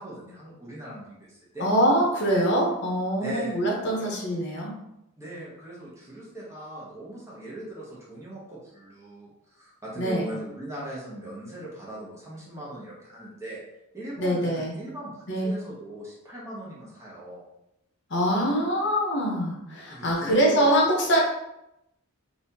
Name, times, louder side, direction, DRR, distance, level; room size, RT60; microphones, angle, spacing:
voice 1, 0.0-1.7 3.2-3.6 4.0-4.3 5.2-13.6 13.9-17.5 19.9-20.7, right 1 dB, 15° right, -6 dB, 0.9 m, -39 dB
voice 2, 1.6-4.7 9.9-10.3 14.2-14.7 15.3-15.5 18.1-21.2, equal, 50° left, -2 dB, 0.8 m, -24 dB
4.1 x 2.5 x 2.7 m, 0.85 s
head